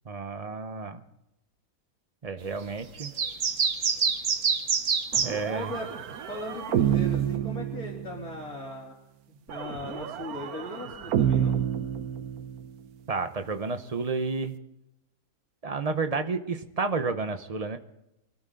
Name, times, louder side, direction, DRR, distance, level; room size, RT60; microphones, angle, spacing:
voice 1, 0.0-1.0 2.2-3.1 5.2-5.7 13.1-14.6 15.6-17.8, right 4 dB, 30° right, 8 dB, 0.8 m, -31 dB
sound 1, 3.0-5.3, right 6 dB, 60° right, 1.6 m, -25 dB
sound 2, 5.1-8.4 9.5-12.8, right 10 dB, 85° right, 1.3 m, -29 dB
voice 2, 5.5-9.0 9.3-11.6, left 2 dB, 80° left, -6 dB, 3.7 m, -38 dB
24.0 x 14.0 x 3.9 m, 0.90 s
omnidirectional pair, 1.5 m